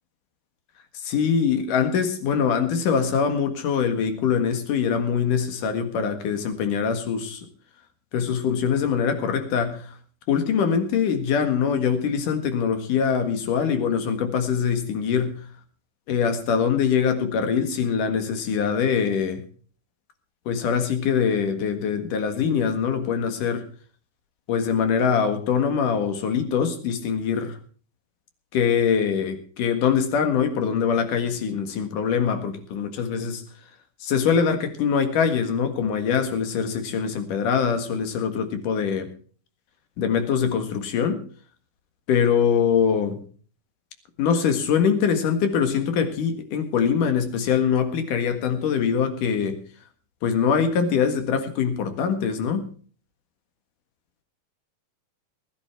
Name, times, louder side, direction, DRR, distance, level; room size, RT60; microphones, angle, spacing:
voice 1, 0.9-7.4 8.1-9.9 10.3-15.4 16.1-19.4 20.5-23.6 24.5-27.6 28.5-33.4 34.0-39.1 40.0-41.2 42.1-43.2 44.2-49.6 50.2-52.7, left 7 dB, 75° left, 8 dB, 3.3 m, -23 dB
20.0 x 10.5 x 4.5 m, 0.43 s
omnidirectional pair, 3.8 m